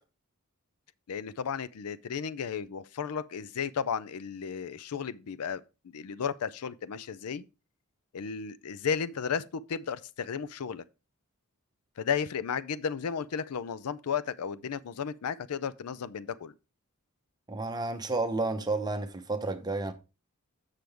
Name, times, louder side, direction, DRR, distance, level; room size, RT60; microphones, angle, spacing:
voice 1, 1.1-7.4 8.1-10.8 12.0-16.5, left 7 dB, 80° left, 0.5 m, -34 dB
voice 2, 17.5-19.9, right 3 dB, 20° right, 0.8 m, -31 dB
7.6 x 6.6 x 3.4 m
head